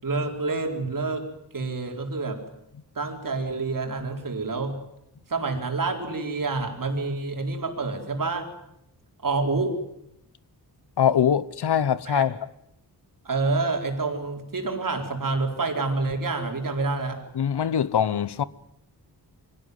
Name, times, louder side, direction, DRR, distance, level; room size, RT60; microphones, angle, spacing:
voice 1, 0.0-1.3 1.5-2.4 2.9-4.8 5.3-8.5 9.2-9.8 12.1-12.3 13.2-17.2, right 3 dB, 50° right, 4.4 m, -28 dB
voice 2, 11.0-12.4 17.3-18.4, left 8 dB, 75° left, 0.9 m, -23 dB
24.5 x 17.5 x 9.4 m
wide cardioid pair, 125°, 41 cm